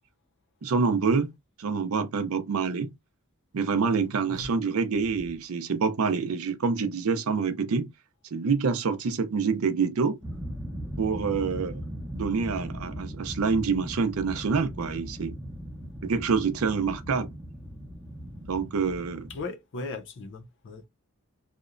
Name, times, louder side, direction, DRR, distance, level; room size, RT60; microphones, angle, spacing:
voice 1, 0.6-1.3 1.6-2.9 3.5-7.9 8.3-10.2 11.0-11.8 12.1-15.3 16.0-17.3 18.4-19.3, right 5 dB, 65° right, 0.5 m, -26 dB
sound 1, 10.2-19.4, equal, 5° right, 0.5 m, -39 dB
voice 2, 19.3-20.8, left 3 dB, 55° left, 0.5 m, -38 dB
2.8 x 2.1 x 2.5 m
head